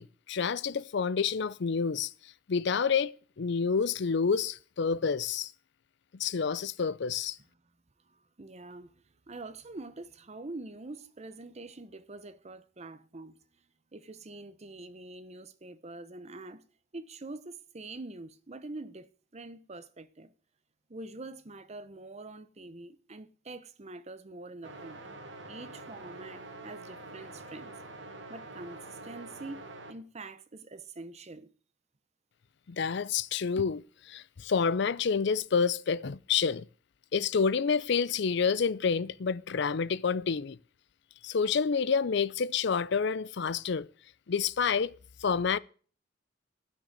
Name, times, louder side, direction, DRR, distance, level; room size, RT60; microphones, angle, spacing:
voice 1, 0.0-2.1 2.5-5.5 6.2-7.4 32.7-36.7 37.1-40.6 41.2-43.9 44.3-44.9 45.2-45.6, left 6 dB, 65° left, 0.5 m, -28 dB
voice 2, 8.1-8.9 9.3-13.4 13.9-16.6 16.9-20.3 20.9-25.0 25.5-27.7 28.3-29.6 29.9-31.5, right 2 dB, 35° right, 0.8 m, -45 dB
sound 1, 24.6-29.9, right 2 dB, 70° right, 1.9 m, -46 dB
13.0 x 6.5 x 8.0 m
head